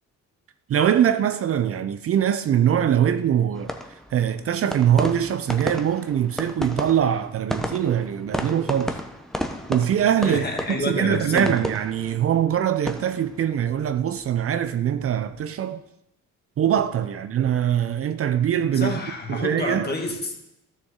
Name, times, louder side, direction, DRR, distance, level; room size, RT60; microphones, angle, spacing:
voice 1, 0.7-3.7 4.1-9.0 9.7-15.8 16.6-19.0 19.3-19.9, right 9 dB, 50° right, 0.5 m, -22 dB
sound 1, 3.5-14.7 14.9-15.4, equal, ahead, 0.9 m, -34 dB
voice 2, 10.2-11.6 18.7-20.3, left 2 dB, 35° left, 1.9 m, -28 dB
12.5 x 6.6 x 3.7 m
cardioid pair, 90°, 30 cm